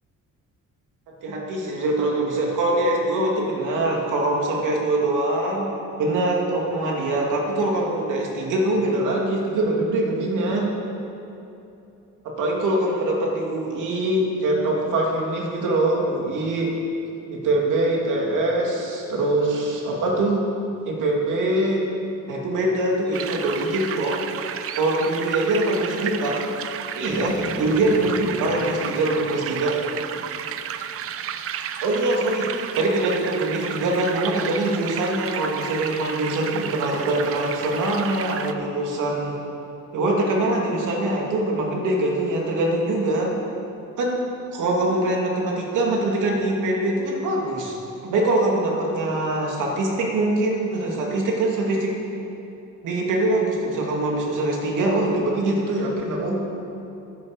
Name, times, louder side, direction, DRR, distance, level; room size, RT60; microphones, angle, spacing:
voice 1, 1.2-5.7 6.0-10.8 12.2-16.7 17.3-20.5 20.8-21.8 22.3-24.2 24.7-26.4 26.9-29.8 31.8-39.3 39.9-43.3 44.0-44.2 44.5-47.7 48.0-52.0 52.8-56.4, right 2 dB, 70° right, -1 dB, 2.4 m, -23 dB
sound 1, 23.1-31.6, equal, 5° left, 3.4 m, -40 dB
sound 2, 23.1-38.5, right 9 dB, 45° right, 0.5 m, -32 dB
10.5 x 9.8 x 7.3 m, 2.8 s
cardioid pair, 170°, 32 cm